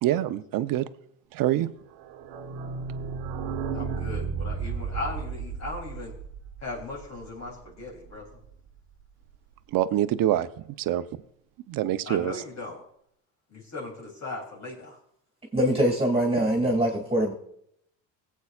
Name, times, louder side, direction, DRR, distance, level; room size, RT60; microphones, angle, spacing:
voice 1, 0.0-0.8 1.3-1.7 9.7-10.5 10.8-11.0 11.7-12.4, right 13 dB, 60° right, 12 dB, 0.8 m, -25 dB
sound 1, 1.9-7.5 7.8-7.9 8.1-8.2 8.4-8.5, right 5 dB, 90° right, 1.2 m, -33 dB
voice 2, 3.7-6.1 6.6-8.3 12.0-12.8 13.5-15.0, left 3 dB, 45° left, -3 dB, 3.2 m, -37 dB
voice 3, 15.5-17.3, right 1 dB, 15° right, 1 dB, 2.3 m, -23 dB
21.0 x 8.3 x 2.4 m, 0.69 s
supercardioid pair, 95°, 37 cm